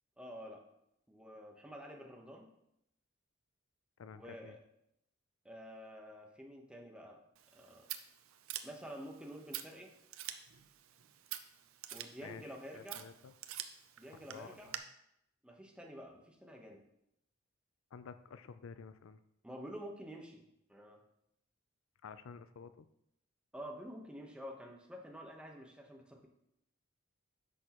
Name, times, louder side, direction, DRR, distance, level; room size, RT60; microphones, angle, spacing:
voice 1, 0.2-0.6 1.1-2.5 4.1-4.6 5.4-7.2 7.5-7.9 8.6-9.9 11.9-13.1 14.0-14.7 15.4-16.8 19.4-20.4 20.7-21.0 23.5-26.3, equal, 5° right, 1 dB, 1.0 m, -49 dB
voice 2, 4.0-4.6 12.2-13.3 14.2-14.6 17.9-19.2 22.0-22.9, left 6 dB, 80° left, 12 dB, 0.4 m, -51 dB
Scissors, 7.4-14.8, right 11 dB, 90° right, 0.6 m, -48 dB
9.9 x 6.2 x 3.0 m, 0.78 s
head